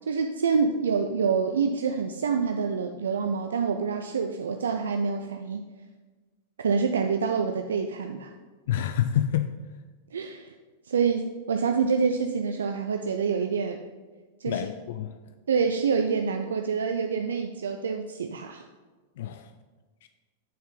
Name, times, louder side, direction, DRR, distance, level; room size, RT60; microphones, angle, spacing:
voice 1, 0.1-5.6 6.6-8.3 10.1-10.5 10.9-13.8 14.4-14.6 15.5-18.6, right 5 dB, 85° right, 0.4 m, -26 dB
voice 2, 8.7-9.5 14.4-15.2 19.2-19.5 20.0-20.1, left 10 dB, 70° left, 0.3 m, -28 dB
9.1 x 4.5 x 3.8 m
hypercardioid pair, 110°, 0 cm